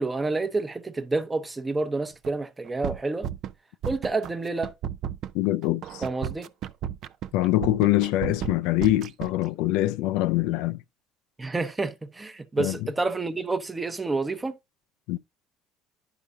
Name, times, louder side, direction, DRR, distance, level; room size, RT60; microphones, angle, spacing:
voice 1, 0.0-3.3 3.8-4.7 6.0-6.5 11.4-14.5, right 3 dB, 15° right, 0.8 m, -29 dB
sound 1, 2.2-2.3 2.7-3.5 3.8-4.3 4.6-9.5, right 10 dB, 60° right, 0.4 m, -33 dB
voice 2, 5.3-6.0 7.3-10.8 12.6-12.8 15.1-15.2, left 16 dB, 75° left, 0.3 m, -24 dB
11.0 x 4.9 x 2.6 m
supercardioid pair, 110°, 0 cm